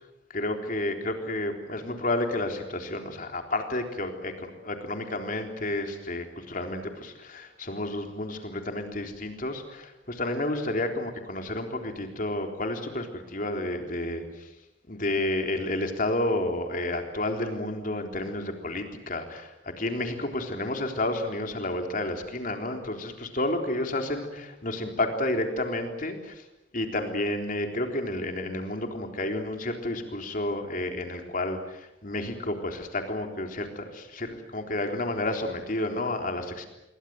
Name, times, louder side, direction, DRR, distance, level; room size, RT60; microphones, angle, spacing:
voice 1, 0.3-14.5 14.9-19.5 19.8-26.4 26.7-36.7, left 1 dB, 45° left, 4 dB, 3.8 m, -31 dB
27.0 x 23.5 x 7.8 m, 0.95 s
head